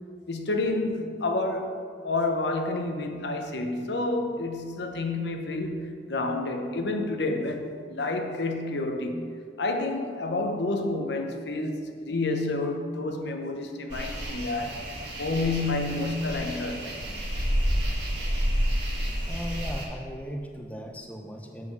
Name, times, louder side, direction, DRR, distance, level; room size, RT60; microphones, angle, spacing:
voice 1, 0.3-14.8 15.2-16.9, left 2 dB, 75° left, 4 dB, 0.9 m, -29 dB
sound 1, 13.9-19.9, equal, 80° right, 1.6 m, -29 dB
voice 2, 19.3-21.7, equal, 10° left, 2 dB, 0.6 m, -37 dB
7.4 x 5.8 x 6.0 m, 2.1 s
head